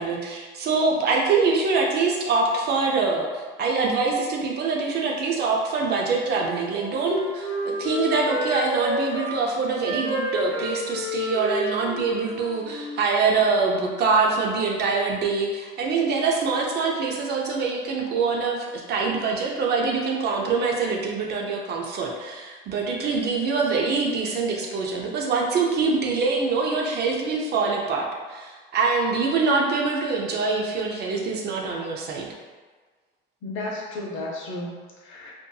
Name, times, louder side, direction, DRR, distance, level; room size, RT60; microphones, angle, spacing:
voice 1, 0.0-32.3, right 4 dB, 55° right, 0 dB, 0.5 m, -24 dB
Wind instrument woodwind instrument, 6.2-9.3 9.8-13.0, equal, 90° right, 1.3 m, -30 dB
voice 2, 33.4-35.3, left 2 dB, 75° left, -2 dB, 0.7 m, -33 dB
2.6 x 2.6 x 2.2 m, 1.4 s
cardioid pair, 140°, 21 cm